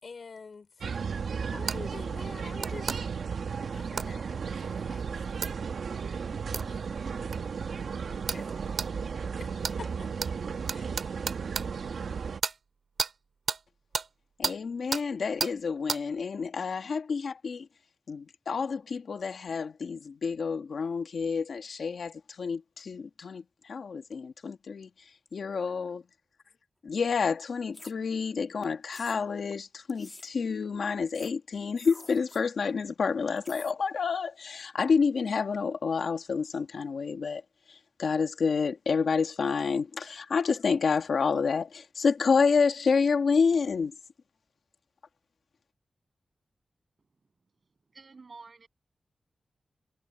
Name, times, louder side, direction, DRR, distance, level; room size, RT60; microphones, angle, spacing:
voice 1, 0.0-0.8 1.5-2.9 3.7-5.5 6.5-7.1 8.3-8.9 9.4-10.1 10.7-11.0, left 4 dB, 50° left, 4.2 m, -47 dB
sound 1, 0.8-12.4, right 6 dB, 90° right, 1.4 m, -34 dB
sound 2, 1.7-1.8 2.6-3.0 4.0-4.1 5.4-5.5 6.5-6.7 7.3-7.4 8.3-8.4 8.8-8.9 9.6-9.8 10.2-10.3 10.7-11.7 12.4-12.6 13.0-13.1 13.5-13.6 13.9-14.1 14.4-14.6 14.9-15.0 15.4-15.5 15.9-16.0, right 5 dB, 70° right, 2.0 m, -31 dB
voice 2, 14.4-17.7 18.1-23.4 23.7-24.9 25.3-26.0 26.8-37.4 38.0-43.9, left 5 dB, 70° left, 1.7 m, -29 dB
sound 3, 27.7-27.9 28.9-29.2 29.9-30.3 31.1-31.3 31.7-32.4 33.4-33.7, left 2 dB, 20° left, 2.0 m, -48 dB
voice 3, 47.9-48.7, right 4 dB, 40° right, 7.8 m, -49 dB
wide cardioid pair, 180°, 0 cm